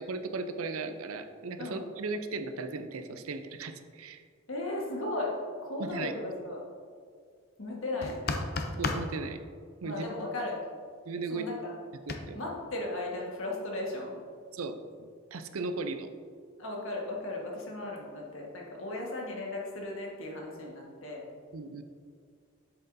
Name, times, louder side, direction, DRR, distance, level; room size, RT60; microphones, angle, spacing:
voice 1, 0.0-4.2 5.8-6.1 8.7-9.4 9.8-10.0 11.1-11.5 12.1-12.4 14.5-16.1 21.5-21.8, right 3 dB, 90° right, 9 dB, 0.5 m, -37 dB
voice 2, 1.6-1.9 4.5-6.6 7.6-8.4 9.8-10.6 11.3-11.7 12.3-14.1 16.6-21.2, left 2 dB, 75° left, -1 dB, 1.5 m, -36 dB
sound 1, 8.0-9.1 12.1-12.2, left 3 dB, 45° left, 0.5 m, -31 dB
7.8 x 7.7 x 2.7 m, 2.1 s
head